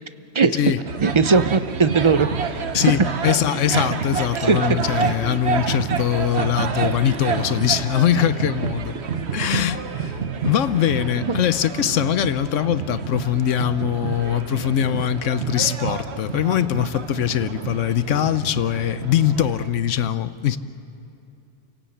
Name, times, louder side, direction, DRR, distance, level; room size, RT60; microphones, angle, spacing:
sound 1, 0.9-19.7, right 6 dB, 60° right, 1.2 m, -28 dB
voice 1, 1.0-2.7 3.7-3.9 4.4-4.8, right 4 dB, 35° right, 0.5 m, -19 dB
voice 2, 2.7-9.0 9.3-20.6, left 10 dB, 80° left, 1.1 m, -22 dB
29.5 x 17.0 x 8.5 m
omnidirectional pair, 1.3 m